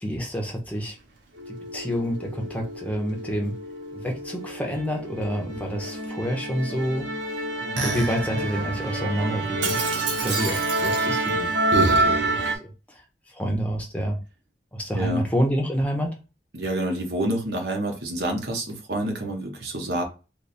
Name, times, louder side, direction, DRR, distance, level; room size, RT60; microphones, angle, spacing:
voice 1, 0.0-0.9 1.7-3.5 3.9-7.1 7.6-9.8 10.2-11.5 11.9-12.7 13.4-14.2 14.7-16.1, equal, 10° left, 0 dB, 0.8 m, -28 dB
Musical instrument, 1.4-12.6, right 2 dB, 90° right, 0.9 m, -27 dB
voice 2, 14.9-15.3 16.5-20.0, right 1 dB, 65° right, 1 dB, 1.0 m, -28 dB
3.3 x 2.2 x 4.1 m, 0.31 s
head